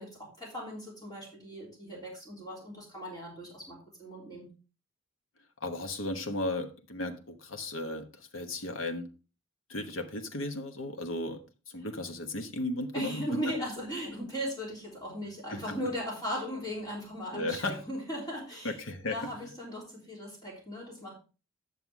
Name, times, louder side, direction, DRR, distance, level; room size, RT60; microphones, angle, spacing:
voice 1, 0.0-4.5 12.9-18.8 19.1-21.1, equal, 20° left, 3.3 m, -38 dB
voice 2, 5.6-9.1 9.7-13.5 15.5-15.8 17.3-17.8 18.6-19.5, left 2 dB, 80° left, 1.2 m, -35 dB
9.3 x 6.8 x 3.5 m
head